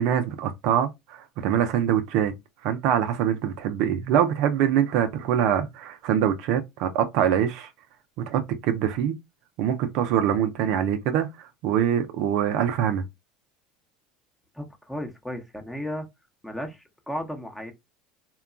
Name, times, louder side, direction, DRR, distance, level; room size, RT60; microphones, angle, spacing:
voice 1, 0.0-2.3 2.6-7.7 8.3-9.1 9.6-11.3 11.6-13.0, right 9 dB, 65° right, 0.4 m, -24 dB
voice 2, 14.5-16.1 16.4-17.7, equal, 5° left, 0.8 m, -34 dB
2.9 x 2.3 x 2.4 m
hypercardioid pair, 90°, 0 cm